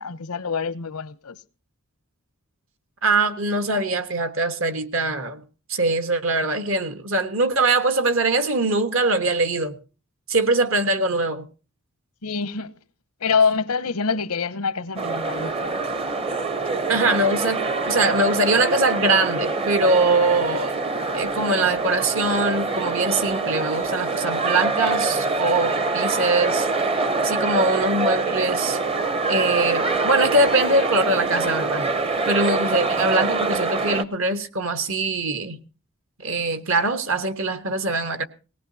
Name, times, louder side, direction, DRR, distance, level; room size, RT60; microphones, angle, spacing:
voice 1, 0.0-1.4 12.2-12.7 13.2-15.8, left 5 dB, 90° left, 0.8 m, -25 dB
voice 2, 3.0-5.4 5.7-9.8 10.3-11.5 16.9-20.7 21.1-26.7 27.2-28.8 29.3-31.9 32.3-35.6 36.2-38.2, right 2 dB, 65° right, 1.3 m, -22 dB
sound 1, 15.0-34.0, right 3 dB, 25° right, 0.7 m, -25 dB
19.0 x 19.0 x 2.8 m
head